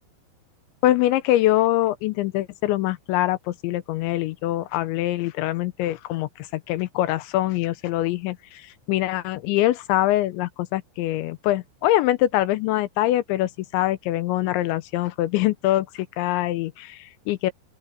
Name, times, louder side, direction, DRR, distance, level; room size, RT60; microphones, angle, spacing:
voice 1, 0.8-17.5, left 15 dB, 80° left, 2.8 m, -24 dB
open air
omnidirectional pair, 5.7 m